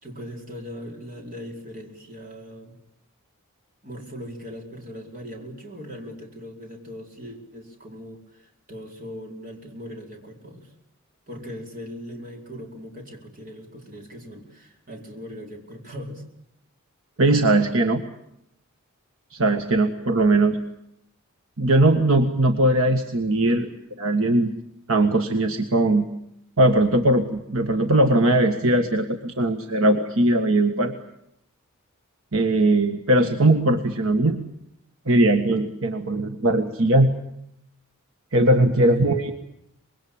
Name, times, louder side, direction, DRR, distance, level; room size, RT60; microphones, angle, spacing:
voice 1, 0.0-2.8 3.8-10.7 11.3-16.2 38.7-39.1, equal, 40° right, 1 dB, 4.9 m, -39 dB
voice 2, 17.2-18.0 19.3-20.6 21.6-23.7 24.0-24.5 24.9-26.1 26.6-30.9 32.3-34.4 35.1-37.1 38.3-39.3, right 1 dB, 65° right, 6 dB, 1.6 m, -20 dB
25.5 x 21.5 x 8.8 m, 0.78 s
head